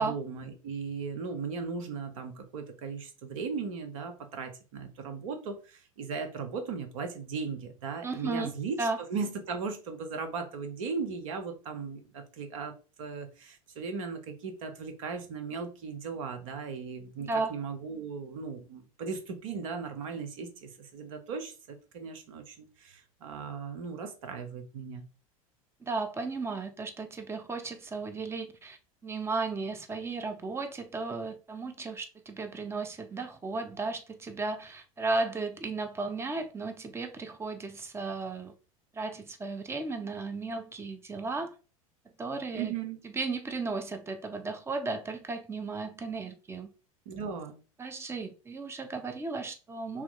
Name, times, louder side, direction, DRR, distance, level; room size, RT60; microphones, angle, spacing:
voice 1, 0.0-25.0 42.5-43.0 47.1-47.6, right 5 dB, 65° right, 0.9 m, -37 dB
voice 2, 8.0-8.5 8.8-9.0 17.2-17.5 25.8-28.8 29.0-38.5 38.9-41.5 42.2-42.7 43.1-46.7 47.8-50.0, right 3 dB, 15° right, 0.6 m, -34 dB
3.0 x 2.9 x 3.8 m
hypercardioid pair, 80°, 18 cm